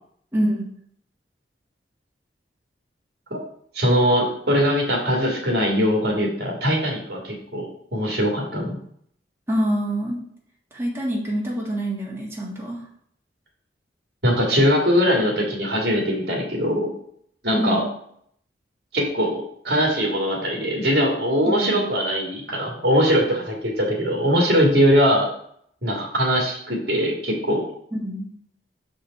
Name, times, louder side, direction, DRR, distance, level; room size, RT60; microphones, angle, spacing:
voice 1, 0.3-0.7 9.5-10.2 10.7-12.8 17.5-17.9 21.4-21.9 27.9-28.3, equal, 15° right, -4 dB, 1.6 m, -26 dB
voice 2, 3.7-8.8 14.2-16.9 17.4-17.8 18.9-25.3 25.8-27.6, equal, 60° right, -1 dB, 2.2 m, -21 dB
6.2 x 5.3 x 4.1 m, 0.66 s
head